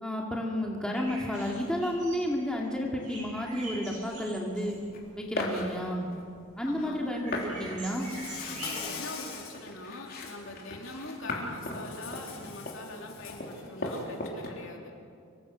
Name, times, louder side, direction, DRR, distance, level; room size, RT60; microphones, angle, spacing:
voice 1, 0.0-4.8 5.2-6.1 6.6-8.1, equal, 5° left, -1 dB, 2.4 m, -31 dB
sound 1, 0.9-8.8, right 2 dB, 35° right, 7.9 m, -46 dB
sound 2, 4.6-5.0 5.4-6.2 6.8-6.9 7.3-14.5, left 1 dB, 45° left, 3.9 m, -38 dB
voice 2, 6.7-7.0 8.5-14.9, left 2 dB, 65° left, 1 dB, 3.5 m, -43 dB
Insect, 7.8-9.6 10.1-10.4 11.6-13.5, left 5 dB, 90° left, 5.7 m, -42 dB
25.5 x 24.0 x 6.5 m, 2.3 s
head